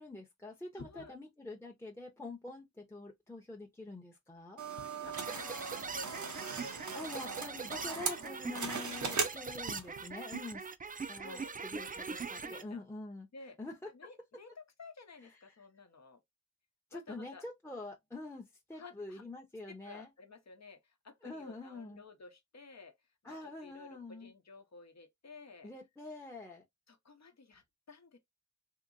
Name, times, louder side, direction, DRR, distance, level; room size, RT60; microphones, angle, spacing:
voice 1, 0.0-4.6 6.9-10.7 11.1-13.3 13.6-13.9 16.9-20.1 21.2-22.0 23.2-24.3 25.6-26.6, left 2 dB, 10° left, 0.7 m, -46 dB
voice 2, 0.7-1.2 4.7-6.8 8.2-8.4 11.2-11.5 12.3-12.8 13.3-13.6 13.9-16.2 16.9-17.5 18.8-19.2 19.7-22.9 23.2-25.7 26.9-28.2, left 4 dB, 65° left, 0.8 m, -54 dB
sound 1, 4.6-10.0, right 5 dB, 80° right, 0.7 m, -39 dB
sound 2, 5.2-12.6, right 5 dB, 30° right, 0.4 m, -42 dB
2.9 x 2.8 x 2.5 m
wide cardioid pair, 55°, 29 cm